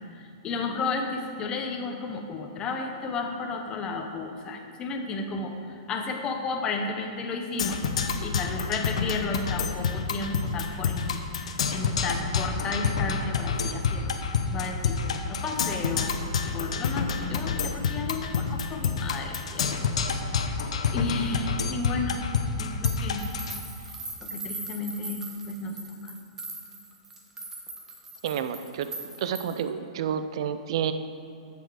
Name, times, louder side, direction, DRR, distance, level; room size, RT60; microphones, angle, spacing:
voice 1, 0.0-7.8 8.2-16.1 16.5-19.8 20.1-20.6 20.9-22.2 22.5-23.2 23.8-23.9 24.2-26.1, left 3 dB, 25° left, 4 dB, 0.9 m, -33 dB
Percussion, 7.6-23.6, left 5 dB, 80° left, 0.7 m, -28 dB
sound 1, 22.8-29.7, right 2 dB, 15° right, 1.1 m, -40 dB
voice 2, 28.2-28.9 29.2-30.9, right 8 dB, 60° right, 10 dB, 0.5 m, -29 dB
7.7 x 7.0 x 4.8 m, 2.6 s
hypercardioid pair, 140°, 3 cm